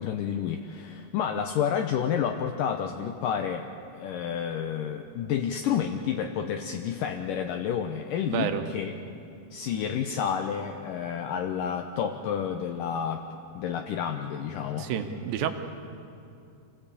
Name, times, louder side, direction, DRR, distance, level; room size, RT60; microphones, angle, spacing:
voice 1, 0.0-3.7 3.9-9.0 9.5-13.3 13.6-14.9, left 8 dB, 75° left, 4 dB, 2.1 m, -30 dB
voice 2, 8.3-8.6 14.8-15.5, right 9 dB, 70° right, 7 dB, 2.7 m, -29 dB
27.0 x 17.0 x 8.5 m, 2.6 s
omnidirectional pair, 4.7 m